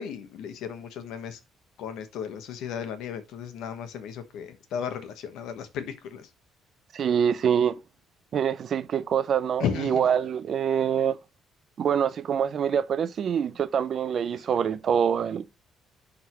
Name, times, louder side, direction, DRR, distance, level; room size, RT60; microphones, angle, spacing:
voice 1, 0.0-1.4 1.8-6.3 9.6-10.1, left 8 dB, 80° left, 1.2 m, -34 dB
voice 2, 6.9-7.8 8.3-11.2 11.8-15.5, right 8 dB, 50° right, 0.5 m, -25 dB
10.5 x 3.6 x 3.0 m
cardioid pair, 115°, 0 cm